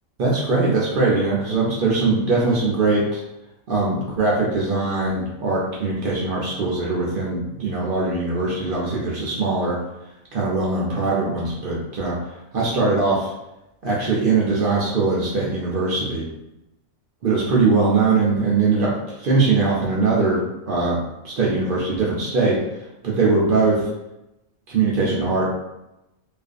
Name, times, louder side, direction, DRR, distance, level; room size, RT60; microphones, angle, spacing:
voice 1, 0.2-3.2 3.7-9.8 10.3-12.1 12.5-13.3 13.8-16.2 17.2-21.0 21.2-22.6 23.0-23.8 24.7-25.5, right 3 dB, 65° right, -5 dB, 0.5 m, -21 dB
2.4 x 2.4 x 2.4 m, 0.92 s
omnidirectional pair, 1.4 m